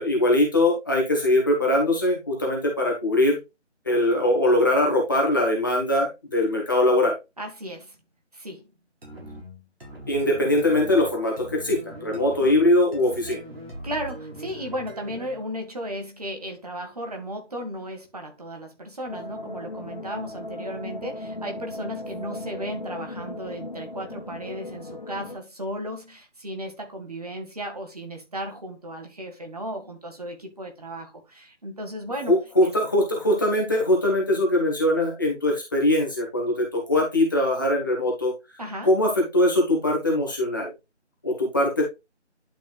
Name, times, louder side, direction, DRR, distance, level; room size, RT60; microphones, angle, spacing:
voice 1, 0.0-3.4 3.8-7.1 10.1-13.4 32.3-38.3 38.8-40.7 41.2-41.8, left 1 dB, 15° left, 1.6 m, -22 dB
voice 2, 7.4-8.0 8.3-8.7 13.3-13.5 13.8-32.4 32.6-32.7 38.6-38.9, equal, 30° right, 2.1 m, -35 dB
sound 1, 9.0-15.5, right 1 dB, 55° right, 4.4 m, -41 dB
sound 2, 19.1-25.4, left 2 dB, 40° left, 1.1 m, -37 dB
11.0 x 5.5 x 2.4 m
figure-of-eight pair, 170°, 36 cm